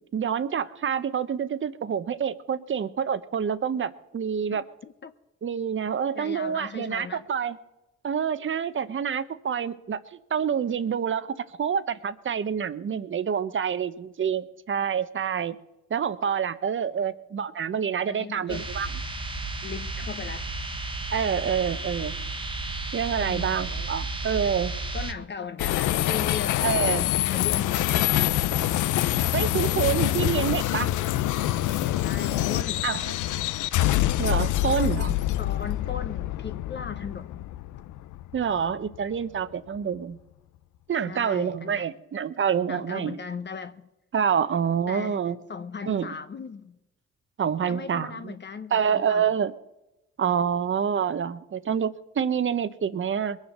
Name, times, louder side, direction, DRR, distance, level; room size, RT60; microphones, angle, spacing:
voice 1, 0.1-4.6 5.4-7.6 8.0-10.0 10.3-11.3 11.6-15.6 15.9-18.9 21.1-22.2 22.9-24.7 26.6-27.1 29.3-30.9 32.8-33.1 34.2-35.1 38.3-40.2 40.9-43.2 44.1-45.4 45.9-46.1 47.4-48.3 48.7-49.5 50.2-53.4, right 7 dB, 40° right, 0.9 m, -27 dB
voice 2, 4.5-5.1 6.1-7.3 17.0-17.1 18.1-18.7 19.6-20.5 23.2-23.9 24.9-26.6 27.2-27.9 31.9-32.8 34.7-37.4 41.1-41.9 42.7-43.9 44.9-45.2 45.5-46.8 47.7-49.3, left 6 dB, 35° left, 0.8 m, -38 dB
sound 1, 18.5-25.1, right 2 dB, 15° right, 1.4 m, -33 dB
sound 2, 25.6-39.0, left 14 dB, 80° left, 0.6 m, -25 dB
21.5 x 7.3 x 6.7 m
cardioid pair, 90°, 30 cm